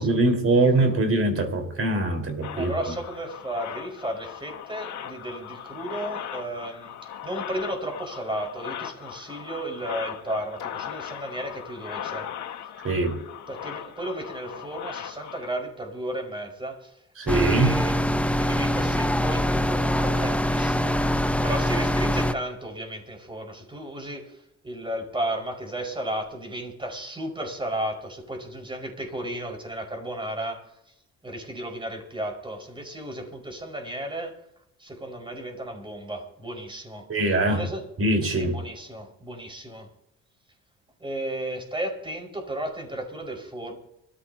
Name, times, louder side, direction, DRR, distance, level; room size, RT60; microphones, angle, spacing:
voice 1, 0.0-2.7 12.8-13.2 17.2-17.8 37.1-37.6 38.0-38.6, right 2 dB, 50° right, 4 dB, 4.6 m, -22 dB
sound 1, 2.4-15.5, left 9 dB, 70° left, 1.7 m, -38 dB
voice 2, 2.5-12.3 13.5-17.0 17.3-18.0 18.4-30.9 31.2-34.4 34.8-37.1 37.5-37.8 38.2-39.9 41.0-43.8, right 1 dB, 15° right, 3 dB, 5.3 m, -34 dB
sound 2, 17.3-22.3, equal, 5° left, 0.7 m, -24 dB
25.0 x 14.5 x 2.9 m, 0.81 s
cardioid pair, 90°, 30 cm